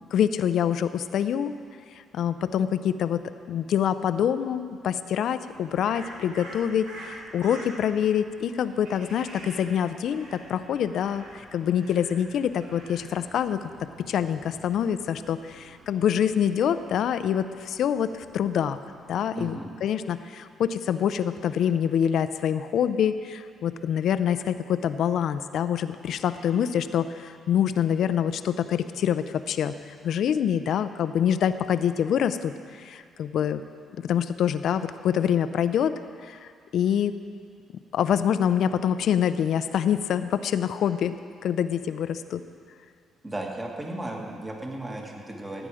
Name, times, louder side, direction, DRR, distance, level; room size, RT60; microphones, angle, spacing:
voice 1, 0.1-1.5 2.1-13.7 14.1-18.8 19.1-29.7 30.0-32.5 32.8-33.6 34.0-35.9 36.2-37.1 37.9-41.2 41.4-42.4, left 9 dB, 70° left, 11 dB, 0.5 m, -25 dB
Crow, 5.5-19.2, right 1 dB, 90° right, 2.3 m, -47 dB
voice 2, 19.3-19.7 43.2-45.7, right 1 dB, 20° right, 0 dB, 1.9 m, -35 dB
15.5 x 8.9 x 4.9 m, 2.3 s
cardioid pair, 90°, 0 cm